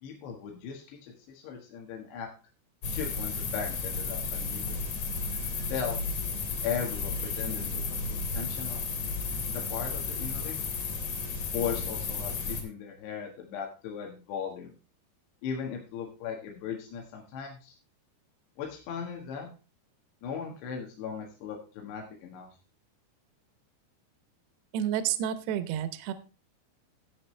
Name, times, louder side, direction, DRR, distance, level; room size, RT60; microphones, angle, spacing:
voice 1, 0.0-2.3 2.9-4.8 5.7-6.0 6.6-8.8 9.5-10.6 11.5-14.7 15.4-17.7 18.6-19.5 20.2-22.5, left 7 dB, 70° left, 0 dB, 3.6 m, -37 dB
sound 1, 2.8-12.6, left 4 dB, 45° left, 2.5 m, -33 dB
voice 2, 24.7-26.1, right 10 dB, 75° right, 11 dB, 2.7 m, -30 dB
14.0 x 8.2 x 3.2 m, 0.34 s
omnidirectional pair, 5.2 m